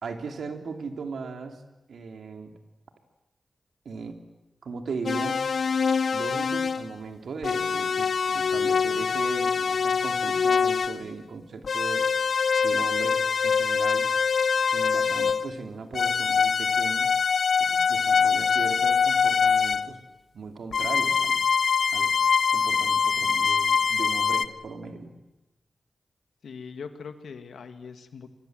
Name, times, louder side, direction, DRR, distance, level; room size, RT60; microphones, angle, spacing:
voice 1, 0.0-1.6 1.9-2.5 3.8-4.1 4.6-5.4 6.1-12.0 12.6-14.1 14.6-17.1 17.6-20.0 20.3-21.4 21.9-22.1 22.5-25.1, right 4 dB, 85° right, 6 dB, 2.9 m, -37 dB
sound 1, 5.1-6.9 7.4-11.0 11.6-15.6 15.9-19.9 20.7-24.5, left 6 dB, 75° left, 1.1 m, -24 dB
voice 2, 26.4-28.3, left 5 dB, 90° left, 8 dB, 2.1 m, -41 dB
30.0 x 24.0 x 7.9 m, 1.0 s
cardioid pair, 65°, 0 cm